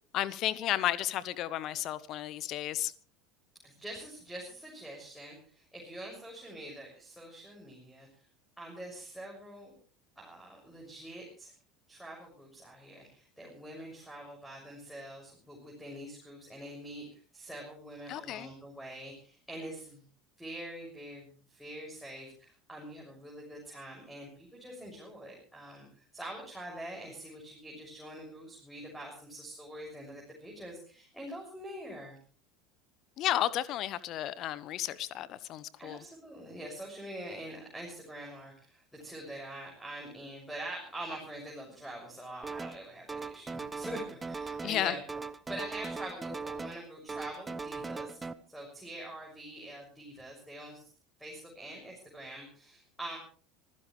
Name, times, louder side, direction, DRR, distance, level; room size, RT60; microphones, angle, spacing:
voice 1, 0.1-2.9 18.1-18.5 33.2-36.0 44.6-45.0, left 13 dB, 45° left, 1.0 m, -33 dB
voice 2, 3.6-8.1 8.6-9.7 10.2-11.5 11.9-20.0 20.4-32.2 35.8-45.0 45.5-48.2 48.5-50.8 51.2-53.2, right 1 dB, ahead, 6.5 m, -45 dB
sound 1, 42.4-42.8 43.1-44.8 45.1-46.8 47.1-48.3, right 4 dB, 15° right, 0.9 m, -39 dB
26.0 x 15.5 x 3.3 m
figure-of-eight pair, 75°, 0 cm